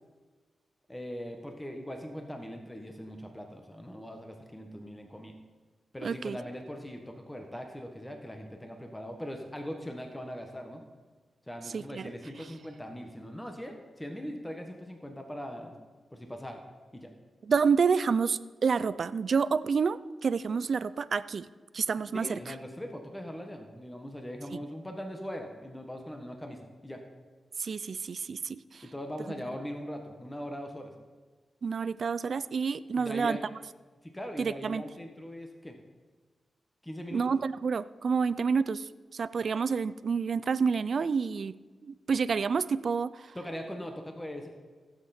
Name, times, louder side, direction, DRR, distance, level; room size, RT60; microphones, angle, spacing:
voice 1, 0.9-5.3 5.9-10.8 11.5-15.8 16.1-16.6 16.9-17.1 21.9-27.0 28.8-30.9 32.9-33.4 34.0-35.7 36.8-37.2 43.3-44.5, equal, 10° left, 3 dB, 1.5 m, -40 dB
voice 2, 6.0-6.4 11.7-12.1 17.5-21.5 21.7-22.4 27.6-28.8 31.6-33.4 34.4-34.8 37.1-41.6 41.8-43.3, right 5 dB, 65° right, 16 dB, 0.4 m, -29 dB
15.5 x 8.0 x 4.4 m, 1.4 s
cardioid pair, 60°, 0 cm